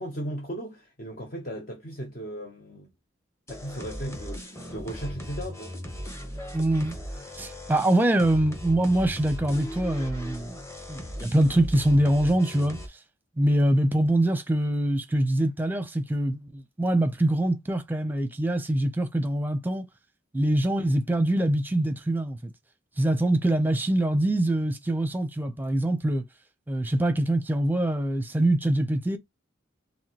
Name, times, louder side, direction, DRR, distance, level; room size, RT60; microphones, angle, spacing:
voice 1, 0.0-2.9 3.5-5.7, right 1 dB, 45° left, 0.9 m, -36 dB
sound 1, 3.5-12.9, equal, 15° left, 0.9 m, -38 dB
voice 2, 6.5-6.9 7.4-10.6 10.9-12.8 13.4-19.8 20.3-22.5 23.0-26.2 26.7-29.2, right 1 dB, 10° right, 0.7 m, -24 dB
4.8 x 3.3 x 2.9 m
head